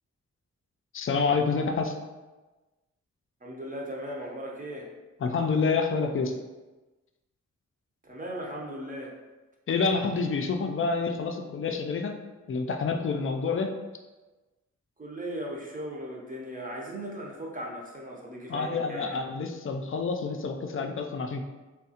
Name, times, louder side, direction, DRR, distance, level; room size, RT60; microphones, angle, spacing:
voice 1, 0.9-1.9 5.2-6.3 9.7-12.2 12.5-13.7 18.5-21.4, left 4 dB, 45° left, 5 dB, 0.4 m, -28 dB
voice 2, 3.4-4.9 8.0-9.1 15.0-19.2, right 1 dB, 25° right, -2 dB, 0.8 m, -37 dB
3.6 x 2.3 x 2.8 m, 1.2 s
cardioid pair, 75°, 30 cm